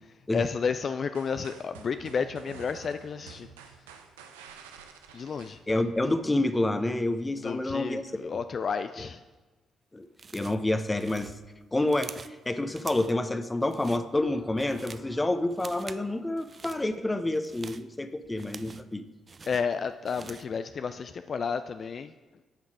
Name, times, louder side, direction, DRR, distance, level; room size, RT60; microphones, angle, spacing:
voice 1, 0.0-3.8 5.1-5.6 7.4-9.2 19.4-22.1, left 6 dB, 50° left, 10 dB, 0.3 m, -32 dB
sound 1, 1.1-6.4, right 7 dB, 85° right, 0.6 m, -49 dB
voice 2, 5.7-8.2 9.0-9.1 9.9-10.1 10.3-11.3 11.7-19.0, left 1 dB, 20° left, 10 dB, 0.8 m, -28 dB
sound 2, 10.2-10.7 11.0-12.4 12.8-13.2 13.6-14.0 14.4-15.1 15.5-16.1 16.4-16.8 17.3-18.9 19.3-20.6, right 5 dB, 40° right, 0.4 m, -46 dB
10.5 x 5.7 x 4.8 m, 1.2 s
hypercardioid pair, 45°, 0 cm